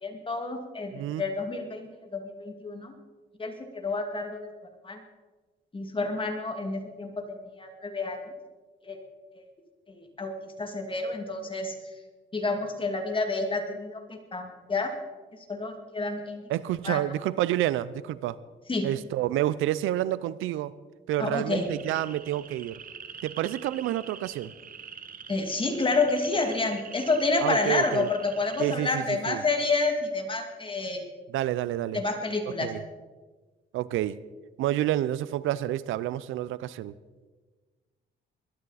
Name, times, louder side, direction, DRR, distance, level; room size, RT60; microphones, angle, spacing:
voice 1, 0.0-2.9 3.4-4.5 4.8-5.0 5.7-8.2 8.8-9.0 9.9-11.7 12.3-14.9 15.5-16.4 16.8-17.0 18.7-18.9 21.2-21.7 25.3-31.0 31.9-32.7, left 3 dB, 25° left, 4 dB, 2.3 m, -29 dB
voice 2, 0.9-1.2 16.5-18.4 18.8-20.7 21.1-22.8 23.2-24.5 27.4-28.1 28.6-29.4 31.3-32.0 32.6-32.8 33.7-34.2 34.6-37.0, right 13 dB, 85° right, 18 dB, 0.5 m, -29 dB
sound 1, 21.5-28.8, right 7 dB, 45° right, 1.1 m, -45 dB
20.5 x 12.0 x 4.1 m, 1.3 s
cardioid pair, 90°, 20 cm